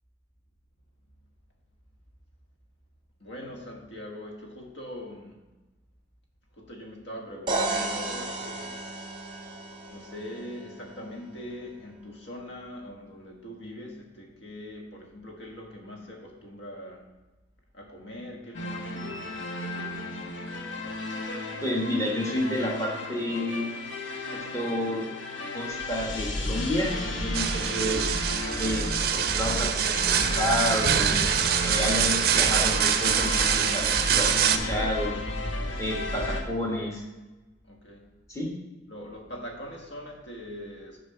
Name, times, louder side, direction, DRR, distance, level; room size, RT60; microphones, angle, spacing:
voice 1, 3.2-5.5 6.5-8.8 9.9-17.1 17.7-19.4 35.6-36.0 37.6-38.1 38.9-41.0, left 1 dB, 65° left, 0 dB, 1.4 m, -42 dB
sound 1, 7.5-11.3, right 2 dB, 25° right, 0.8 m, -33 dB
sound 2, 18.5-36.4, left 1 dB, 80° left, 1.0 m, -33 dB
voice 2, 21.6-23.7 24.3-25.1 25.5-28.1 28.6-31.2 31.6-35.1 35.8-37.0 38.3-38.5, left 1 dB, 15° left, -3 dB, 1.3 m, -30 dB
sound 3, 27.3-34.6, right 9 dB, 50° right, 0.4 m, -25 dB
6.5 x 4.3 x 5.7 m, 1.1 s
head